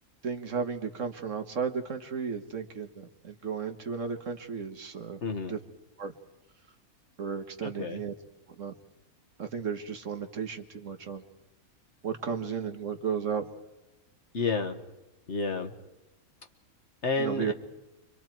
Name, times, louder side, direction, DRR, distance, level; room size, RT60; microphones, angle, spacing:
voice 1, 0.2-5.2 5.5-5.6 6.0-6.1 7.2-8.1 8.6-8.7 9.4-11.2 12.0-13.4 17.2-17.5, right 6 dB, 60° right, 6 dB, 1.7 m, -34 dB
voice 2, 5.2-5.5 7.6-8.0 14.3-14.8 15.3-15.7 17.0-17.5, left 3 dB, 50° left, 6 dB, 1.6 m, -30 dB
30.0 x 24.5 x 4.6 m, 1.0 s
omnidirectional pair, 1.5 m